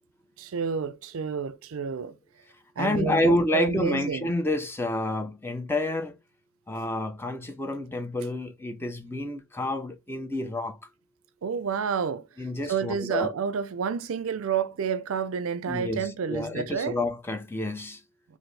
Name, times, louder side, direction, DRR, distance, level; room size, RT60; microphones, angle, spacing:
voice 1, 0.4-2.2 2.8-4.3 11.4-12.3 12.7-17.0, right 6 dB, 70° right, 0.4 m, -29 dB
voice 2, 2.8-6.2 6.7-10.8 12.4-13.3 15.7-18.0, left 1 dB, 10° left, 0.4 m, -29 dB
4.1 x 2.5 x 3.3 m
head